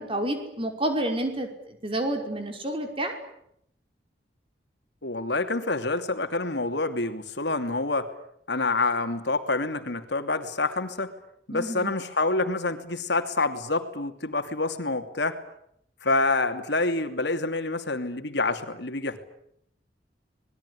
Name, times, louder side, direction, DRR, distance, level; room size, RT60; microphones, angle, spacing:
voice 1, 0.0-3.1 11.5-11.9, right 1 dB, 30° right, 5 dB, 5.4 m, -29 dB
voice 2, 5.0-8.1 8.5-11.1 11.5-15.4 16.0-19.2, left 3 dB, 75° left, 7 dB, 2.8 m, -27 dB
26.5 x 21.0 x 10.0 m, 0.74 s
head